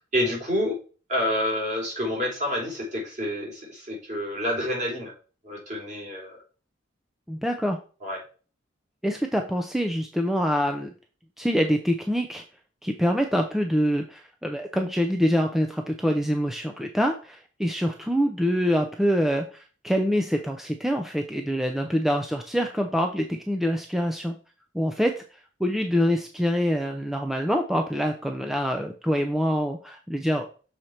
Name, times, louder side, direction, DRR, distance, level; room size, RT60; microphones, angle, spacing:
voice 1, 0.1-0.8 1.1-5.1 5.4-6.4 8.0-8.2, left 1 dB, 40° right, -2 dB, 3.1 m, -28 dB
voice 2, 7.3-7.8 9.0-10.9 11.4-12.4 12.8-24.3 24.7-25.2 25.6-30.5, equal, ahead, 4 dB, 0.5 m, -25 dB
6.5 x 4.5 x 4.2 m, 0.37 s
head